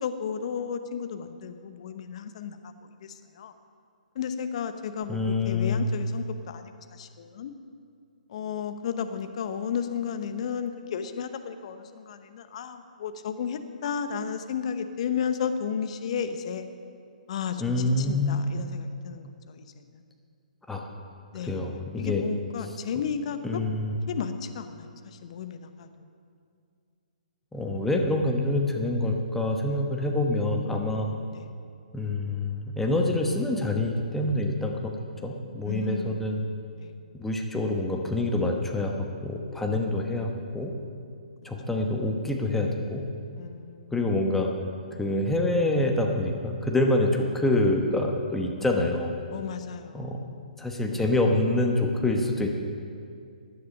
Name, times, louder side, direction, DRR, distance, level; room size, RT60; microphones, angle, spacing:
voice 1, 0.0-2.7 3.0-3.5 4.1-5.2 5.4-7.5 8.3-16.6 17.3-20.0 21.3-23.6 24.1-25.9 31.3-31.5 35.6-36.2 36.7-36.9 43.4-43.9 49.3-50.2 50.9-51.0, left 7 dB, 50° left, 9 dB, 0.9 m, -33 dB
voice 2, 5.1-5.8 17.6-18.4 20.7-20.9 21.4-22.2 23.4-23.9 27.5-31.1 31.9-34.9 35.2-36.4 37.1-38.9 39.2-40.7 41.4-43.0 43.9-44.5 45.0-49.1 49.9-50.2 50.6-52.5, left 2 dB, 5° left, 1 dB, 1.1 m, -26 dB
16.0 x 10.0 x 5.4 m, 2.3 s
figure-of-eight pair, 130°, 4 cm